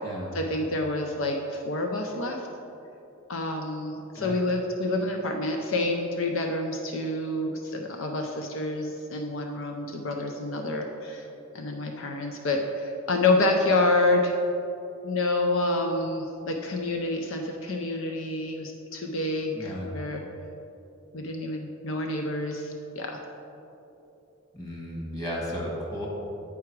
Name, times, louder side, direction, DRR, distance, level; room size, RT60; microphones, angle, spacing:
voice 1, 0.3-2.5 3.3-11.3 11.5-14.3 15.0-20.2 21.1-23.2, left 2 dB, 70° left, 3 dB, 0.6 m, -28 dB
voice 2, 19.5-19.9 24.5-26.1, equal, 15° left, -4 dB, 1.5 m, -34 dB
9.4 x 4.8 x 4.5 m, 2.9 s
head